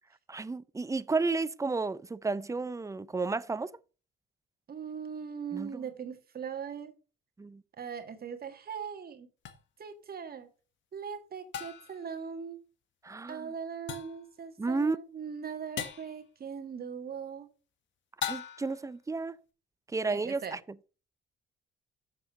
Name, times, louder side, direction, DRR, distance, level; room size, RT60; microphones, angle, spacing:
voice 1, 0.3-3.7 5.5-5.7 7.4-7.6 13.0-13.5 14.6-15.0 18.3-19.4 19.9-20.6, right 3 dB, 15° right, 0.6 m, -32 dB
voice 2, 4.7-6.9 7.8-9.3 9.8-10.5 10.9-12.6 13.3-17.5 20.1-20.6, right 7 dB, 50° right, 1.8 m, -40 dB
sound 1, 9.5-9.6 11.5-12.0 13.9-14.3 15.8-16.1 18.2-18.8, left 8 dB, 70° left, 1.5 m, -38 dB
7.1 x 6.6 x 6.2 m
cardioid pair, 90°, 20 cm